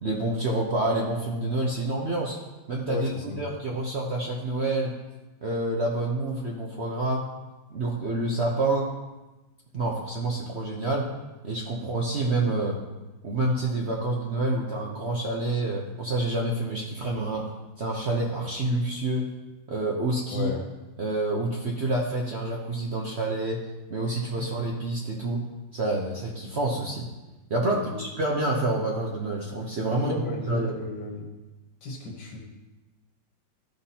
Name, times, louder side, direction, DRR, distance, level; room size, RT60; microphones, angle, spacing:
voice 1, 0.0-2.4 2.7-5.0 5.4-7.2 7.7-8.9 9.7-11.0 11.4-12.8 13.2-17.4 17.8-19.3 19.7-20.5 21.0-23.6 23.9-25.4 25.7-27.1 27.5-30.1 30.5-30.8, right 2 dB, 50° right, -2 dB, 0.9 m, -28 dB
voice 2, 2.9-3.4 20.3-20.6 24.3-24.5 27.6-28.0 29.9-31.3 31.8-32.4, left 3 dB, 70° left, 1 dB, 2.0 m, -34 dB
13.5 x 5.8 x 2.8 m, 1.1 s
omnidirectional pair, 2.0 m